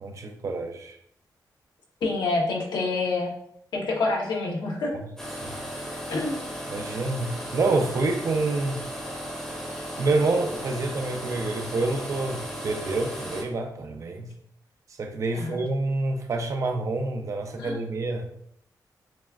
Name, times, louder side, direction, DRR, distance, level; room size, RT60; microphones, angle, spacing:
voice 1, 0.0-0.9 5.4-5.6 6.7-8.8 10.0-14.3 15.0-18.3, right 3 dB, 45° right, 5 dB, 0.5 m, -27 dB
voice 2, 2.0-3.3 3.7-4.9 6.1-6.4 15.3-15.6 17.6-17.8, left 3 dB, 90° left, -1 dB, 0.9 m, -27 dB
sound 1, 5.2-13.4, equal, 5° left, 0.9 m, -36 dB
5.9 x 2.3 x 2.4 m, 0.71 s
wide cardioid pair, 145°, 7 cm